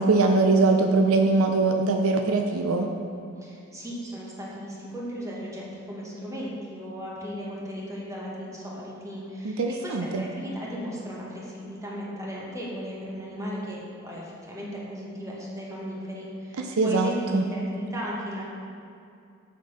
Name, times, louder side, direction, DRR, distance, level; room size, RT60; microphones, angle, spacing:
voice 1, 0.0-2.9 9.4-10.2 16.6-17.4, right 3 dB, 70° right, 4 dB, 0.5 m, -22 dB
voice 2, 3.4-18.4, equal, 15° right, -5 dB, 1.5 m, -36 dB
6.7 x 6.6 x 5.0 m, 2.5 s
head